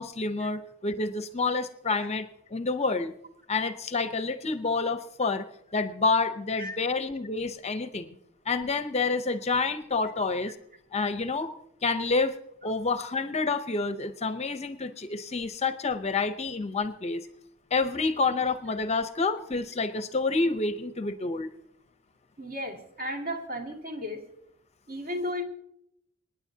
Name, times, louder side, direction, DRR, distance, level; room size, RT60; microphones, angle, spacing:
voice 1, 0.0-3.1 3.5-5.5 5.7-8.1 8.5-10.5 10.9-11.5 11.8-12.4 12.6-17.2 17.7-21.5, left 3 dB, 30° left, 10 dB, 0.6 m, -28 dB
voice 2, 22.4-24.2 24.9-25.4, left 1 dB, 45° right, 2 dB, 2.3 m, -34 dB
27.0 x 9.8 x 2.7 m, 0.75 s
head